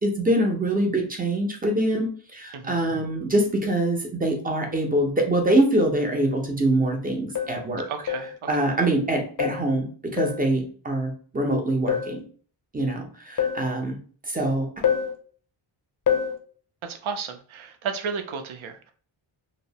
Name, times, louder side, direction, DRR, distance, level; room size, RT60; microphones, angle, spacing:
voice 1, 0.0-7.9 8.5-12.2 12.7-14.0 14.3-14.7, right 1 dB, 20° right, 2 dB, 0.5 m, -24 dB
sound 1, 6.3-6.4 7.4-7.7 8.1-8.4 9.4-9.7 10.2-10.5 11.9-12.2 13.4-13.7 14.8-15.2 16.1-16.4, left 8 dB, 45° left, 0.4 m, -26 dB
voice 2, 7.9-8.7 16.8-18.9, right 5 dB, 75° right, 5 dB, 0.6 m, -33 dB
2.6 x 2.0 x 2.7 m, 0.43 s
wide cardioid pair, 135°, 49 cm